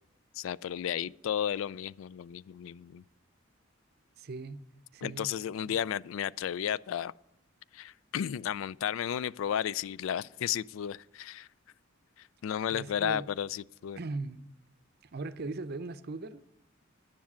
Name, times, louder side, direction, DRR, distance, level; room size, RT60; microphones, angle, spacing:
voice 1, 0.4-3.0 5.0-7.1 7.7-11.5 12.4-14.0, left 9 dB, 75° left, 0.3 m, -33 dB
voice 2, 4.2-4.7 4.9-5.3 5.7-5.8 12.7-13.3 14.0-14.5 15.1-16.4, right 3 dB, 50° right, 0.6 m, -39 dB
10.0 x 7.2 x 7.3 m
head